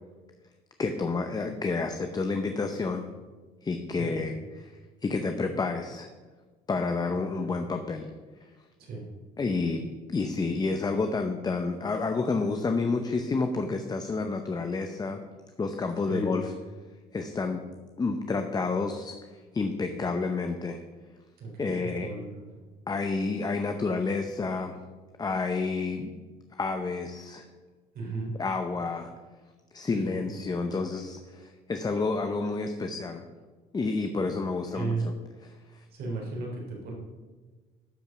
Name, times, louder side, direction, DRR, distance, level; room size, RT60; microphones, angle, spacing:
voice 1, 0.8-3.1 3.6-4.7 5.0-6.1 6.7-8.1 8.4-8.5 9.4-9.8 10.1-15.2 15.6-16.5 17.1-17.6 18.0-20.8 21.6-22.1 22.9-24.8 25.2-26.1 26.5-27.5 28.4-29.1 29.7-33.2 33.7-35.0 35.4-35.9, left 4 dB, 25° left, 6 dB, 0.7 m, -29 dB
voice 2, 4.0-4.3 7.3-7.5 8.8-9.0 16.1-16.3 21.4-22.2 27.9-28.3 29.9-30.3 34.7-35.1 35.9-36.9, right 3 dB, 70° right, -2 dB, 3.7 m, -35 dB
12.0 x 5.3 x 6.0 m, 1.3 s
cardioid pair, 110°, 17 cm